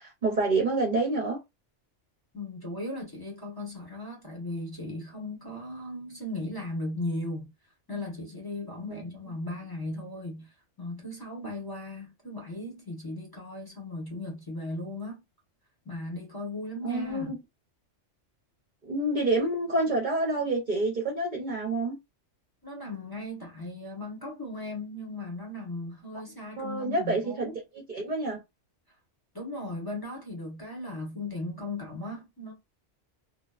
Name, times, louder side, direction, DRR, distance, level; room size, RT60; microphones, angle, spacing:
voice 1, 0.0-1.4 8.9-9.0 16.8-17.4 18.8-21.9 26.6-27.5 27.9-28.4, right 2 dB, 45° right, 0.7 m, -28 dB
voice 2, 2.3-7.5 7.9-15.2 15.8-17.3 22.6-27.5 29.3-32.5, left 1 dB, 20° left, 0.8 m, -37 dB
2.8 x 2.1 x 2.3 m
omnidirectional pair, 1.3 m